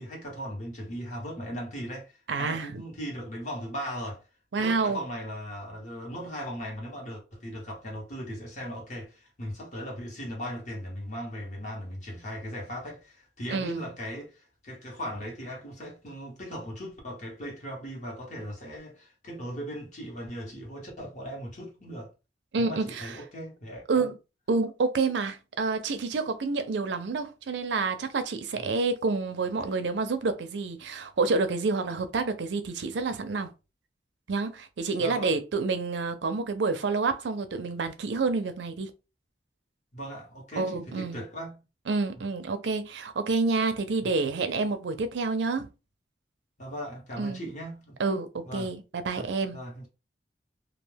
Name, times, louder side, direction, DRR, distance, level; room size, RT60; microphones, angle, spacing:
voice 1, 0.0-4.2 4.6-22.1 22.6-24.1 35.0-35.4 39.9-41.6 44.0-44.1 46.6-48.0 48.4-48.7 49.1-49.9, equal, 45° left, 1.1 m, -38 dB
voice 2, 2.3-2.8 4.5-5.0 13.5-13.8 22.5-23.2 23.9-24.1 24.5-33.5 34.3-38.9 40.6-41.2 41.9-45.7 47.2-47.4 48.0-49.6, right 4 dB, 90° right, 0.5 m, -28 dB
2.4 x 2.2 x 3.3 m
head